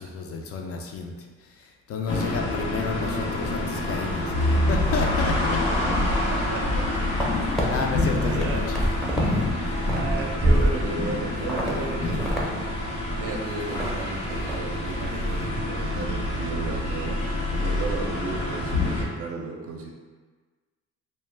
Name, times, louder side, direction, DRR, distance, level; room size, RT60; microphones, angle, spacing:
voice 1, 0.0-5.6 7.0-8.9 9.2-9.5 11.9-12.0, left 4 dB, 50° left, 2 dB, 0.4 m, -31 dB
sound 1, 2.1-19.0, left 1 dB, 90° left, 0.7 m, -27 dB
voice 2, 6.1-7.1 8.2-8.7 9.9-12.3 13.2-19.9, right 3 dB, 50° right, 1 dB, 0.5 m, -34 dB
sound 2, 6.5-7.6 8.1-9.3 9.6-11.1 11.5-11.7 12.0-12.5 12.8-12.9 13.3-13.9 14.2-14.6 14.9-15.2, right 1 dB, ahead, 0.6 m, -26 dB
2.1 x 2.1 x 3.2 m, 1.4 s
cardioid pair, 90°, 30 cm